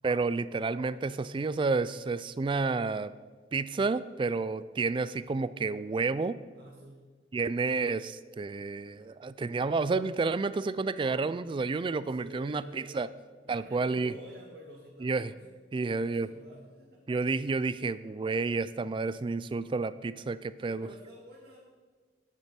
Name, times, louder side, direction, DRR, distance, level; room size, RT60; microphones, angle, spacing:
voice 1, 0.0-3.1 3.5-6.4 7.3-13.1 13.5-14.1 15.0-15.3 15.7-16.3 17.1-20.9, right 4 dB, 30° right, 16 dB, 0.3 m, -30 dB
voice 2, 6.5-7.0 12.1-13.0 13.4-15.4 15.8-17.0 20.6-21.6, right 1 dB, 60° right, -6 dB, 2.0 m, -49 dB
10.5 x 9.0 x 4.3 m, 1.4 s
head